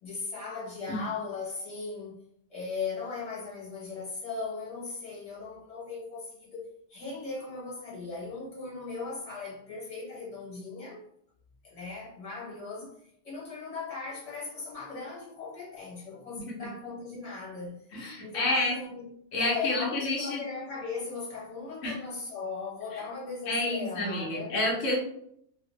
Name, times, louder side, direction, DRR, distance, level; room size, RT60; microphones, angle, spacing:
voice 1, 0.0-2.2 2.5-11.0 11.6-17.9 18.2-19.1 19.4-24.6, left 4 dB, 30° left, 1.3 m, -38 dB
voice 2, 17.9-18.7 19.3-20.4 21.8-22.0 22.9-23.0 23.5-25.0, left 2 dB, 85° left, 1.2 m, -29 dB
2.7 x 2.6 x 3.0 m
omnidirectional pair, 1.3 m